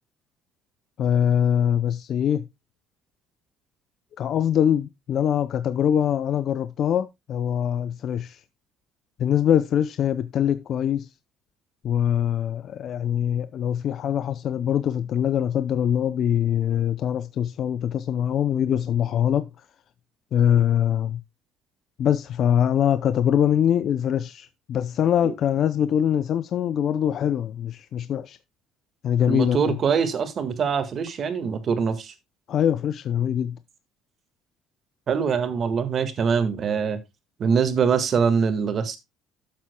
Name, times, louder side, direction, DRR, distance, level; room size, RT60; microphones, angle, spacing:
voice 1, 1.0-2.5 4.2-8.4 9.2-11.1 11.8-19.5 20.3-21.2 22.0-28.4 29.0-29.8 32.5-33.6, left 9 dB, 45° left, 0.6 m, -23 dB
voice 2, 29.3-32.1 35.1-37.0 37.4-39.0, right 6 dB, 35° right, 1.7 m, -23 dB
12.5 x 7.5 x 2.2 m
cardioid pair, 160°, 0 cm